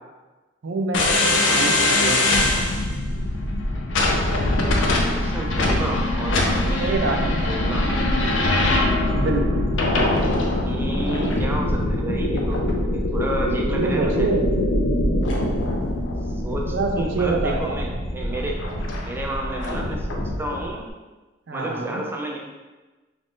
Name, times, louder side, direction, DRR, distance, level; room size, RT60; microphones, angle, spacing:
voice 1, 0.6-2.3 6.8-7.8 9.0-9.7 13.5-14.5 16.7-17.8 21.5-22.0, right 3 dB, 75° right, 3 dB, 0.5 m, -26 dB
sound 1, 0.9-20.6, left 1 dB, 85° left, 0.5 m, -23 dB
voice 2, 1.5-1.8 4.8-7.2 7.5-7.9 10.6-14.3 16.3-18.6 19.0-20.9 21.5-22.4, right 1 dB, 10° right, 0 dB, 0.4 m, -31 dB
3.1 x 2.5 x 3.5 m, 1.2 s
head